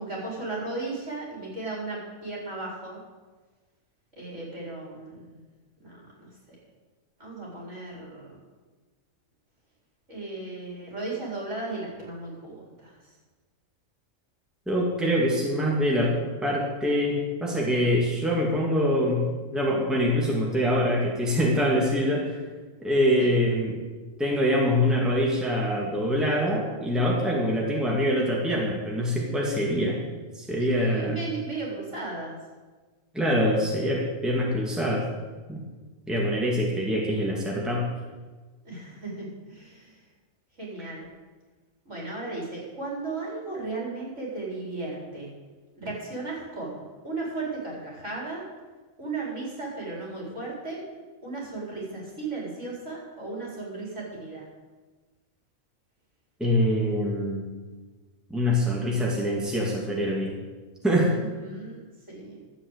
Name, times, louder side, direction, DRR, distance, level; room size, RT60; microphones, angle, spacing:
voice 1, 0.0-3.0 4.2-5.4 5.8-6.6 7.2-8.4 10.1-12.9 23.2-23.3 30.6-32.4 38.6-40.0 40.6-41.1 41.8-45.3 45.8-48.4 49.0-50.8 51.2-54.4 58.4-58.9 61.2-61.8 62.1-62.4, right 3 dB, 60° right, -4 dB, 4.7 m, -35 dB
voice 2, 14.7-22.4 22.8-23.8 24.2-30.0 30.4-31.2 33.1-35.1 35.5-35.6 36.1-37.9 56.4-57.4 58.3-60.4 60.8-61.1, equal, ahead, -3 dB, 2.2 m, -24 dB
12.5 x 7.7 x 8.1 m, 1.3 s
omnidirectional pair, 1.4 m